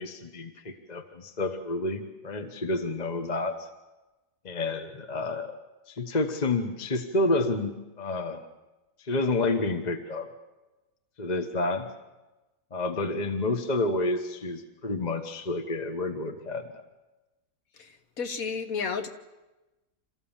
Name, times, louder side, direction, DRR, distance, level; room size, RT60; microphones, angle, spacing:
voice 1, 0.0-3.7 4.4-5.6 5.9-8.5 9.0-10.3 11.2-11.9 12.7-16.8, left 2 dB, 30° left, 7 dB, 1.1 m, -29 dB
voice 2, 17.8-19.1, left 5 dB, 60° left, 7 dB, 1.8 m, -32 dB
27.5 x 14.5 x 7.3 m, 1.1 s
omnidirectional pair, 1.7 m